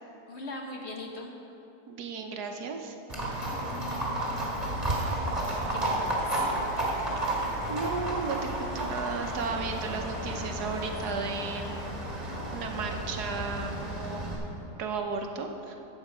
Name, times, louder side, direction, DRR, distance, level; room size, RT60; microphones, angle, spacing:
voice 1, 0.3-1.3 5.4-6.5, left 2 dB, 45° left, 1 dB, 1.2 m, -40 dB
voice 2, 1.9-3.0 7.7-11.9 12.5-14.3 14.8-15.8, right 4 dB, 75° right, 4 dB, 1.4 m, -34 dB
Livestock farm animals working animals, 3.1-14.4, right 1 dB, 20° right, 2.4 m, -32 dB
14.0 x 7.9 x 5.0 m, 3.0 s
omnidirectional pair, 1.8 m